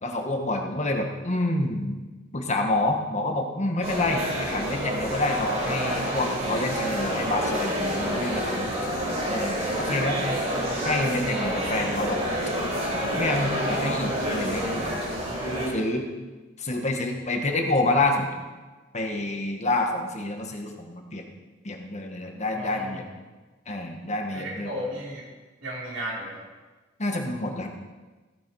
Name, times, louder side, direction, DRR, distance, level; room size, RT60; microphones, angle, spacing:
voice 1, 0.0-2.0 2.3-10.2 10.8-12.2 13.2-14.9 15.7-16.1 16.6-18.3 18.9-21.2 21.6-23.0 23.7-24.7 27.0-27.7, left 2 dB, 35° left, 3 dB, 1.5 m, -28 dB
sound 1, 3.8-15.7, equal, 35° right, 4.4 m, -28 dB
voice 2, 22.5-23.1 24.3-25.3 25.6-26.5, equal, 70° right, -5 dB, 4.7 m, -34 dB
15.0 x 9.6 x 4.8 m, 1.3 s
head